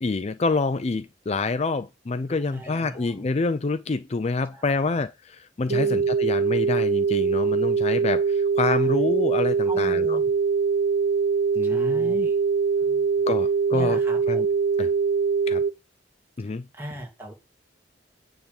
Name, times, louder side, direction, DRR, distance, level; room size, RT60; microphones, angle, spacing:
voice 1, 0.0-10.2 11.6-12.3 13.3-14.0 14.3-14.5 14.8-14.9 15.5-15.6 16.4-16.7, left 3 dB, 35° left, 0.4 m, -27 dB
voice 2, 2.3-3.2 4.5-4.9 5.7-6.1 8.7-9.0 9.6-10.3 11.6-12.4 12.8-13.0 13.7-14.4 16.4-17.3, right 1 dB, 10° right, 2.8 m, -40 dB
sound 1, 5.7-15.7, right 5 dB, 65° right, 0.8 m, -23 dB
9.5 x 3.7 x 7.0 m
head